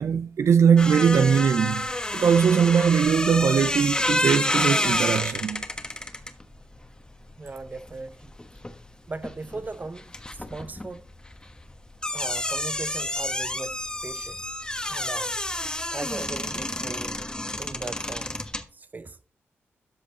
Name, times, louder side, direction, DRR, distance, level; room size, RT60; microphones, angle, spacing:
voice 1, 0.0-5.7, right 7 dB, 70° right, 0.4 m, -21 dB
sound 1, 0.8-8.9 9.1-18.6, left 1 dB, 15° left, 1.3 m, -29 dB
voice 2, 7.4-8.3 9.1-11.0 12.1-13.8 14.0-14.4 14.9-15.3 15.9-17.2 17.6-18.3 18.7-19.2, right 3 dB, 35° right, 0.8 m, -38 dB
13.0 x 5.2 x 4.1 m
cardioid pair, 50°, 5 cm